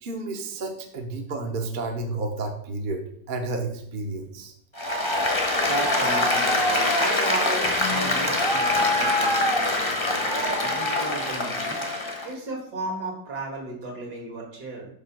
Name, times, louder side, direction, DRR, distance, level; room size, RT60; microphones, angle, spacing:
voice 1, 0.0-4.5, right 2 dB, 40° right, 3 dB, 0.9 m, -31 dB
Applause, 4.8-12.3, left 2 dB, 20° left, 0.9 m, -24 dB
voice 2, 4.8-14.9, right 2 dB, 75° right, 0 dB, 2.4 m, -34 dB
5.6 x 4.4 x 6.0 m, 0.67 s
omnidirectional pair, 1.7 m